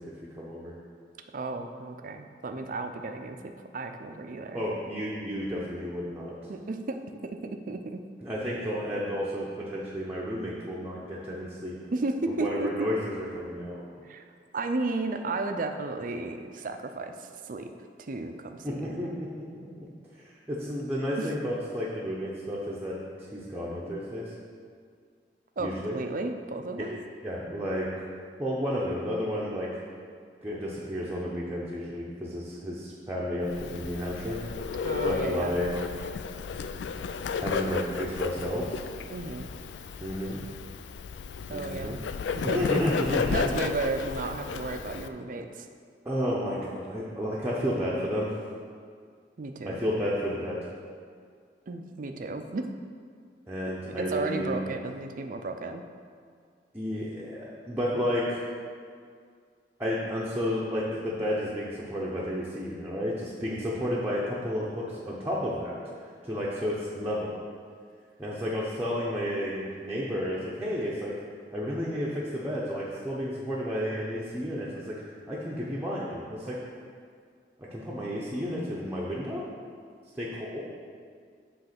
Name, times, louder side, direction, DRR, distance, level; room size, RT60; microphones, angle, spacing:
voice 1, 0.1-0.7 4.5-6.3 8.2-11.8 12.3-13.8 18.6-19.9 20.1-24.3 25.6-26.0 26.8-26.9 27.2-27.9 28.4-29.7 30.4-34.4 35.0-35.7 37.4-38.8 40.0-40.4 41.5-42.0 42.4-43.5 46.0-48.3 49.6-50.6 53.5-54.6 56.7-58.4 59.8-65.8 66.2-67.4 68.2-71.1 71.5-76.6 77.6-79.4 80.1-80.6, equal, 10° right, -7 dB, 0.8 m, -32 dB
voice 2, 1.3-4.6 6.5-7.0 7.4-8.0 11.9-12.9 14.0-14.2 14.5-17.7 18.0-19.1 21.2-21.3 25.6-27.0 34.8-35.5 39.1-39.5 41.5-42.0 42.3-42.7 43.3-45.7 49.4-49.8 51.7-52.7 54.0-55.8, right 3 dB, 50° right, 6 dB, 0.5 m, -33 dB
Bird, 33.5-45.1, left 5 dB, 85° left, 0.3 m, -33 dB
7.8 x 3.2 x 5.9 m, 2.1 s
head